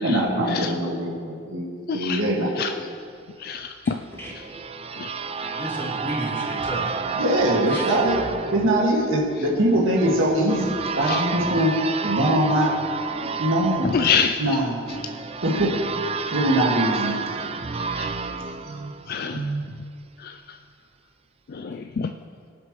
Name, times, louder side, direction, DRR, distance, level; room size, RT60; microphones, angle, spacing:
voice 1, 0.0-2.7 7.2-12.8 13.2-13.9 14.4-14.8 15.4-15.9 16.3-17.2 18.6-18.9 19.3-19.6, right 1 dB, 70° right, -3 dB, 2.0 m, -23 dB
voice 2, 1.9-2.2 2.6-2.7 3.4-4.0 5.0-5.1 7.7-7.8 11.0-11.2 13.9-14.4 17.9-18.1 19.1-19.4 20.2-20.3 21.5-22.1, left 6 dB, 50° left, 6 dB, 0.4 m, -26 dB
voice 3, 3.8-4.3 5.4-6.9 7.7-7.9, right 1 dB, 10° left, -6 dB, 3.2 m, -33 dB
sound 1, 3.9-19.6, right 5 dB, 30° right, 0.4 m, -30 dB
24.0 x 8.0 x 3.2 m, 2.2 s
head